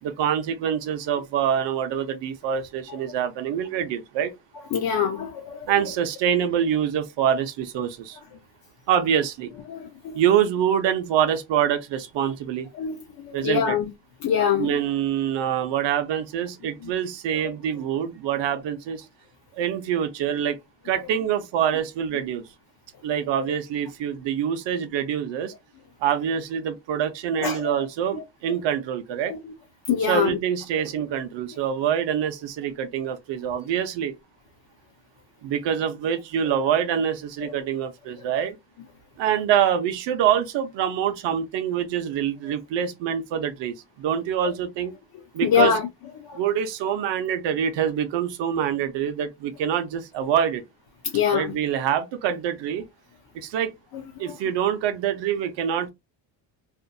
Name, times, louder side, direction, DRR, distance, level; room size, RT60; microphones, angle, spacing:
voice 1, 0.0-4.3 5.7-8.2 8.9-9.5 10.1-12.7 13.3-13.8 14.6-19.0 19.6-20.6 20.8-22.5 23.0-25.5 26.0-29.3 30.1-34.1 35.4-38.6 39.2-44.9 45.3-45.8 46.3-50.6 51.3-52.9 53.3-53.7 54.2-55.9, right 9 dB, 70° right, 0.7 m, -25 dB
voice 2, 4.7-5.9 9.7-10.2 12.7-13.9 14.2-14.7 16.8-16.9 27.4-27.8 28.1-28.2 29.3-29.5 29.9-30.4 37.4-37.5 45.4-45.9 46.2-46.4 51.1-51.6 53.9-54.3, left 7 dB, 50° left, 0.6 m, -25 dB
2.6 x 2.5 x 2.2 m
cardioid pair, 135°, 46 cm